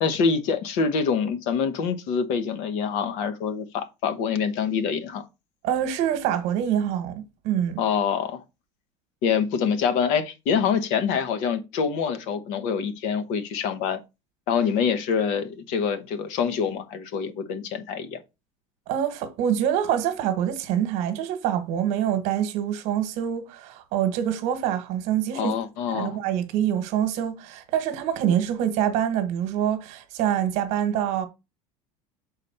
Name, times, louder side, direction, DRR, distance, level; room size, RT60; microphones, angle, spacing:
voice 1, 0.0-5.2 7.8-8.4 9.2-14.0 14.5-18.2 25.3-26.2, left 6 dB, 55° left, 0.9 m, -25 dB
voice 2, 5.6-7.8 18.9-25.6 25.9-31.3, right 10 dB, 55° right, 1.2 m, -25 dB
6.6 x 4.1 x 4.2 m
cardioid pair, 165°, 15 cm